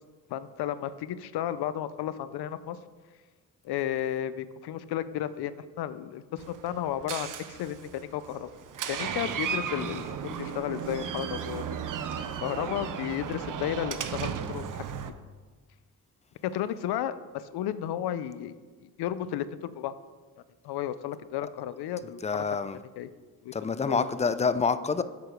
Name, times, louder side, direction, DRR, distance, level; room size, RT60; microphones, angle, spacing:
voice 1, 0.3-2.8 3.6-8.5 8.9-11.6 12.4-14.8 16.4-18.5 18.8-19.9 20.6-22.2 22.5-22.6 23.0-23.1 23.4-23.5 23.8-24.1, left 11 dB, 85° left, 0.5 m, -33 dB
Door, 6.4-15.1, right 7 dB, 55° right, 0.7 m, -35 dB
voice 2, 22.2-22.8 23.5-25.0, left 5 dB, 20° left, 0.3 m, -27 dB
8.1 x 4.7 x 5.1 m
cardioid pair, 80°, 38 cm